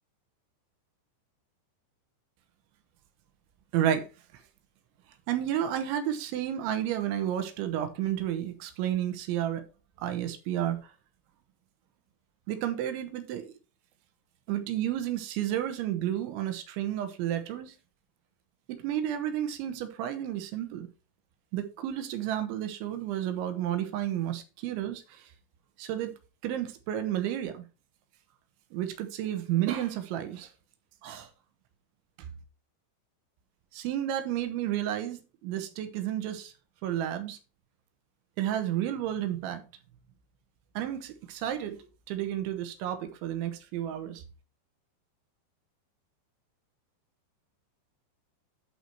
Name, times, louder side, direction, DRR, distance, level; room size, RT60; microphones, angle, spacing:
voice 1, 3.7-4.1 5.3-9.6 10.0-10.8 12.5-13.5 14.5-17.7 18.7-20.9 21.5-25.0 25.8-26.1 26.4-27.6 28.7-30.5 31.0-31.3 33.7-36.5 36.8-37.4 38.4-39.6 40.8-41.8 42.1-44.2, right 11 dB, 80° right, 3.4 m, -31 dB
11.0 x 4.7 x 4.4 m
omnidirectional pair, 5.3 m